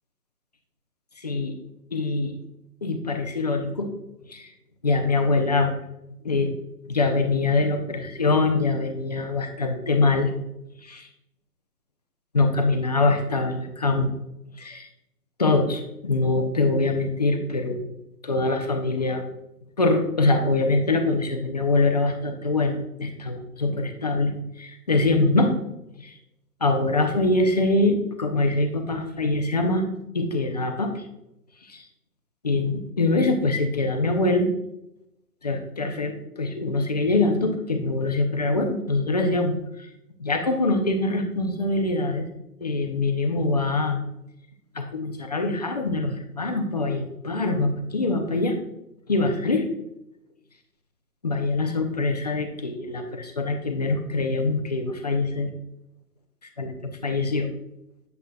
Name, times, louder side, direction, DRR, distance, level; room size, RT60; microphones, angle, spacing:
voice 1, 1.2-1.6 1.9-2.3 2.8-3.9 4.3-4.5 4.8-5.8 6.2-6.6 6.9-10.3 10.8-11.1 12.3-14.2 14.6-14.9 15.4-17.9 18.2-19.2 19.8-25.5 26.0-26.2 26.6-29.8 30.1-31.0 31.6-31.9 32.4-34.5 35.4-39.9 40.2-42.3 42.6-44.0 44.7-48.6 49.1-49.7 51.2-55.5 56.6-57.5, left 2 dB, 25° left, 5 dB, 0.5 m, -24 dB
7.9 x 7.9 x 2.3 m, 0.85 s
hypercardioid pair, 150°, 49 cm